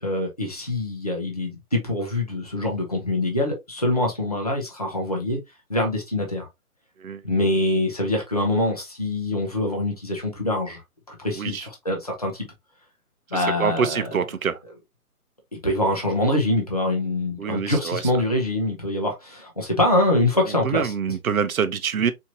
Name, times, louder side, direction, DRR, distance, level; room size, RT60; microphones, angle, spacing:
voice 1, 0.0-5.4 5.7-6.5 7.2-10.8 11.1-12.5 13.3-14.2 15.6-20.8, left 1 dB, 25° left, 0.6 m, -24 dB
voice 2, 7.0-7.5 11.4-11.6 13.3-14.6 17.4-18.0 20.6-22.1, right 7 dB, 65° right, 0.7 m, -25 dB
4.4 x 2.8 x 2.7 m
hypercardioid pair, 180°, 45 cm